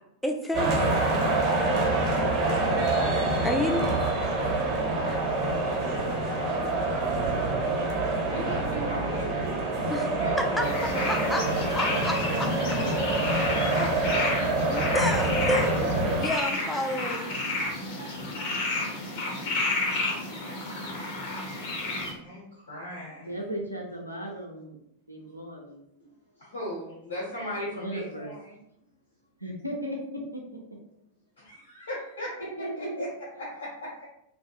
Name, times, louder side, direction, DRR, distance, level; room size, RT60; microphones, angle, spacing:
voice 1, 0.2-0.8 3.4-3.9 9.9-10.1 10.4-11.5 11.7-12.5 14.7-15.7 16.1-17.5, left 1 dB, 5° left, 2 dB, 0.3 m, -30 dB
sound 1, 0.5-16.3, right 2 dB, 35° right, 0.7 m, -26 dB
voice 2, 8.2-9.4 9.9-10.8 11.3-11.8 13.6-14.4 14.7-15.3 15.7-16.3 22.2-23.3 26.4-28.6 31.4-33.1 33.4-34.0, equal, 70° left, -7 dB, 1.0 m, -38 dB
sound 2, 10.6-22.1, left 2 dB, 50° left, 0.7 m, -31 dB
voice 3, 12.4-13.0 23.2-24.8 25.1-25.8 27.7-28.3 29.4-30.0 30.3-30.4 32.4-32.9, right 1 dB, 85° right, -1 dB, 0.4 m, -36 dB
2.2 x 2.1 x 2.8 m, 0.79 s
figure-of-eight pair, 90°, 0 cm